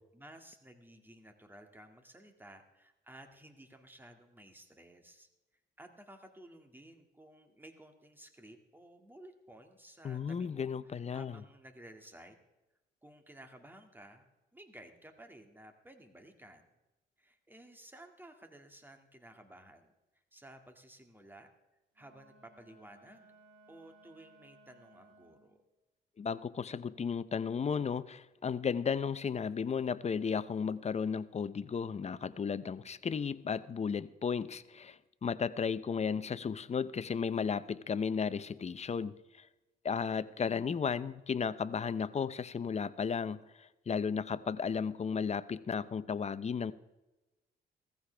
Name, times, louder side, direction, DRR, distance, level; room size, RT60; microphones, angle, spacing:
voice 1, 0.1-5.3 5.8-12.4 13.0-16.7 17.2-21.5 21.9-23.3 23.7-25.6, right 1 dB, 10° right, 5 dB, 2.1 m, -55 dB
voice 2, 10.0-11.4 26.2-39.5 39.8-46.7, left 6 dB, 35° left, 15 dB, 0.7 m, -34 dB
Wind instrument woodwind instrument, 21.9-25.6, right 2 dB, 75° right, 4.3 m, -61 dB
16.0 x 15.0 x 3.4 m, 1.0 s
cardioid pair, 90°, 20 cm